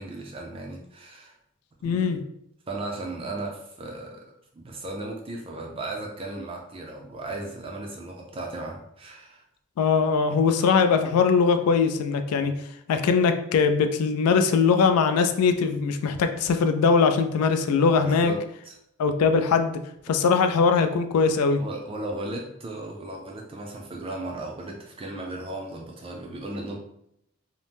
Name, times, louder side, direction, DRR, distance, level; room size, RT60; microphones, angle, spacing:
voice 1, 0.0-1.4 1.8-2.1 2.7-4.3 4.5-9.4 18.0-18.8 20.1-20.2 21.6-26.8, right 2 dB, 25° right, 1 dB, 0.4 m, -36 dB
voice 2, 1.8-2.2 9.8-12.5 12.9-18.3 19.0-19.8 20.1-21.6, left 5 dB, 85° left, 8 dB, 0.3 m, -21 dB
2.8 x 2.0 x 3.3 m, 0.75 s
head